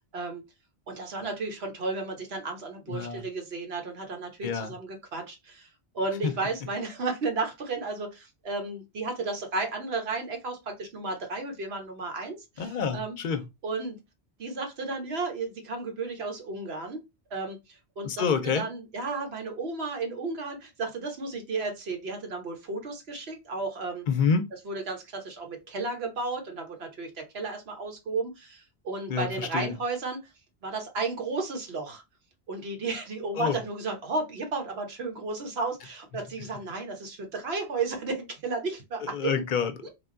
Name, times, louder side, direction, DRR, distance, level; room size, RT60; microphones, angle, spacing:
voice 1, 0.1-0.4 0.9-5.7 5.9-13.2 13.6-14.0 14.4-17.0 17.3-24.1 24.6-30.2 30.6-32.0 32.5-39.4, right 3 dB, 75° right, 1.3 m, -33 dB
voice 2, 2.9-3.2 4.4-4.7 6.2-6.3 12.6-13.4 18.0-18.7 24.1-24.5 29.1-29.7 33.4-33.6 39.0-39.9, left 6 dB, 55° left, 0.7 m, -28 dB
3.5 x 2.3 x 3.7 m
omnidirectional pair, 1.1 m